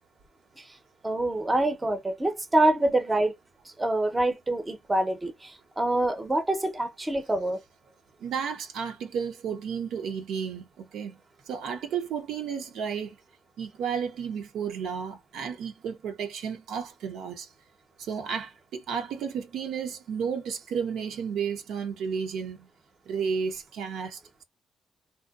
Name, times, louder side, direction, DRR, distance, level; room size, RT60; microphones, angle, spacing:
voice 1, 1.0-3.3 3.6-7.6, right 1 dB, 20° right, 0.6 m, -26 dB
voice 2, 8.2-11.1 11.5-13.2 13.6-17.5 18.0-22.7 23.1-24.2, right 7 dB, 75° right, 0.6 m, -32 dB
2.7 x 2.2 x 2.3 m
cardioid pair, 90°, 0 cm